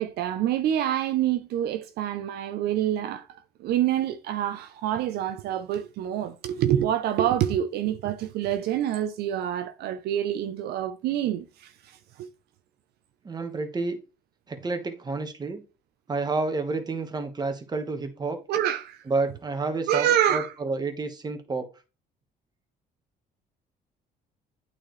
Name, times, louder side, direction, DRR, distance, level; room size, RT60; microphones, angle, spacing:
voice 1, 0.0-12.3 18.5-19.0 19.9-20.5, right 11 dB, 75° right, 0.6 m, -27 dB
voice 2, 13.2-14.0 14.5-15.6 16.1-18.4 19.1-20.1 20.3-21.7, right 3 dB, 25° right, 1.3 m, -29 dB
8.8 x 4.3 x 3.2 m
cardioid pair, 110°, 17 cm